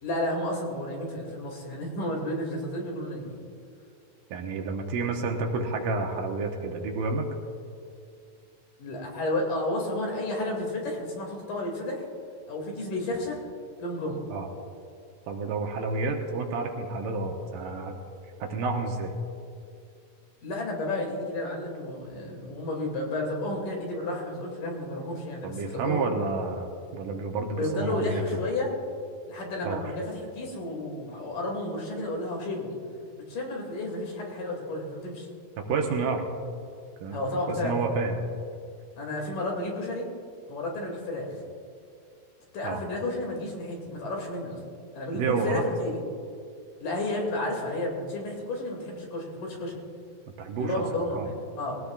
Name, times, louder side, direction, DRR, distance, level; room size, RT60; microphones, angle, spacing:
voice 1, 0.0-3.4 8.8-12.1 12.5-13.4 13.8-14.2 20.4-26.1 27.5-28.7 29.3-32.8 33.3-35.3 37.1-38.0 39.0-40.1 40.5-41.4 42.5-44.6 45.0-46.0 46.8-49.8 50.6-51.8, left 1 dB, 65° left, 0 dB, 3.8 m, -32 dB
voice 2, 4.3-7.3 14.3-14.5 15.3-17.9 18.4-19.1 25.4-28.2 29.6-29.8 35.6-36.2 37.0-37.2 37.5-38.2 42.6-42.8 45.1-45.6 50.4-50.8 51.2-51.3, right 4 dB, 75° right, 2 dB, 2.5 m, -30 dB
20.0 x 17.5 x 2.4 m, 2.4 s
omnidirectional pair, 4.1 m